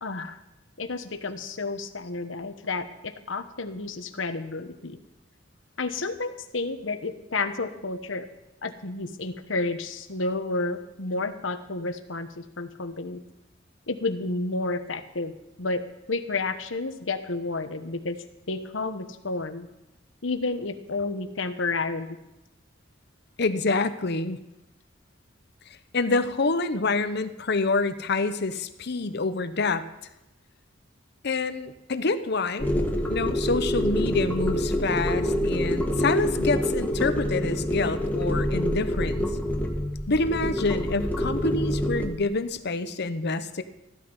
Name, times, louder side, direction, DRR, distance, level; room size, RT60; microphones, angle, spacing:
voice 1, 0.0-0.4 0.8-5.0 5.8-8.3 8.6-13.2 13.9-18.2 18.5-19.7 20.2-22.2, left 3 dB, 75° left, 9 dB, 1.2 m, -31 dB
voice 2, 23.4-24.4 25.9-29.9 31.2-32.7 33.1-39.3 40.1-43.6, left 3 dB, 60° left, 11 dB, 0.8 m, -27 dB
sound 1, 32.6-42.1, equal, 10° left, 1.5 m, -26 dB
15.0 x 12.0 x 5.5 m, 0.94 s
head